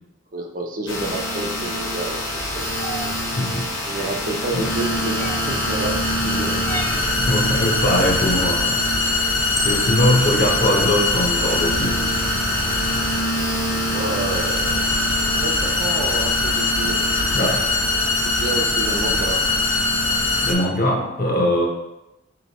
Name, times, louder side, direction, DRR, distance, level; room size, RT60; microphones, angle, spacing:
voice 1, 0.3-2.9 3.2-3.3 3.6-7.1 13.9-14.9 15.4-17.1 18.2-19.4, right 2 dB, 40° right, 2 dB, 0.5 m, -30 dB
sound 1, 0.9-20.5, left 2 dB, 65° left, 1.1 m, -22 dB
sound 2, 2.8-3.1 5.2-5.6 6.7-7.1 8.8-8.9 9.5-9.9, left 1 dB, 15° left, 0.4 m, -29 dB
voice 2, 3.4-4.1 4.5-4.7 6.5-6.6 6.9-8.8 9.1-9.4 9.6-12.1 17.3-17.7 20.4-21.7, left 1 dB, 45° left, 0 dB, 0.8 m, -22 dB
4.3 x 3.0 x 4.0 m, 0.93 s
head